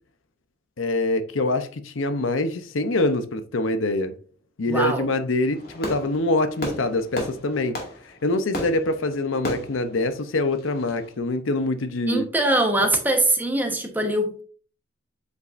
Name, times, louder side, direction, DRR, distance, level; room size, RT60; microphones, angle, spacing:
voice 1, 0.8-4.1 4.6-7.8 8.0-12.3, left 2 dB, 75° left, 0.7 m, -25 dB
voice 2, 4.7-5.1 12.1-14.4, right 1 dB, 10° right, 1.1 m, -22 dB
Fireworks, 5.5-11.1, left 1 dB, 50° left, 2.1 m, -35 dB
8.1 x 5.3 x 2.6 m
head